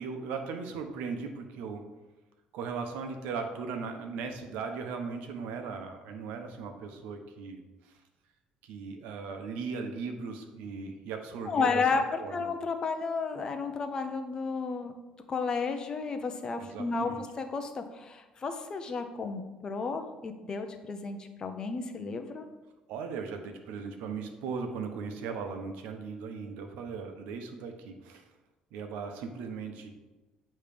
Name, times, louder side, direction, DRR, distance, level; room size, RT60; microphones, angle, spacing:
voice 1, 0.0-1.8 2.5-7.9 8.6-11.8 12.2-12.5 16.6-17.2 22.9-28.2 28.7-29.9, right 5 dB, 90° right, 5 dB, 0.9 m, -38 dB
voice 2, 11.5-14.9 15.3-22.5, left 4 dB, 30° left, 7 dB, 0.6 m, -32 dB
8.8 x 3.2 x 5.1 m, 1.1 s
cardioid pair, 145°, 3 cm